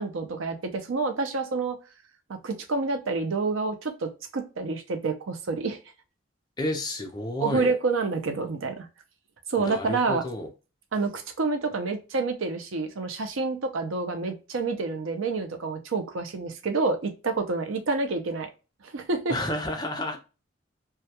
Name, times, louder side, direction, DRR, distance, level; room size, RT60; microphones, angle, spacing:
voice 1, 0.0-1.8 2.3-5.8 7.4-8.9 9.5-10.2 10.9-18.5 18.9-19.4, right 3 dB, 85° right, 6 dB, 0.5 m, -28 dB
voice 2, 6.6-7.7 9.6-10.5 19.3-20.2, left 1 dB, 20° left, 3 dB, 0.5 m, -30 dB
2.2 x 2.2 x 2.7 m, 0.31 s
head